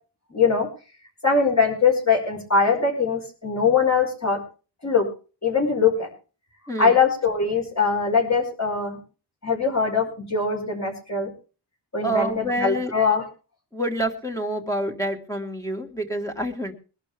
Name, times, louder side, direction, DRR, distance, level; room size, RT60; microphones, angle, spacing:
voice 1, 0.3-0.7 1.2-4.4 4.8-5.1 5.4-6.1 6.8-9.0 9.4-11.3 11.9-13.2, left 5 dB, 40° left, -1 dB, 5.0 m, -22 dB
voice 2, 12.0-12.9 13.7-16.7, right 1 dB, 5° left, 3 dB, 1.6 m, -27 dB
21.5 x 12.0 x 3.5 m, 0.35 s
wide cardioid pair, 140°, 41 cm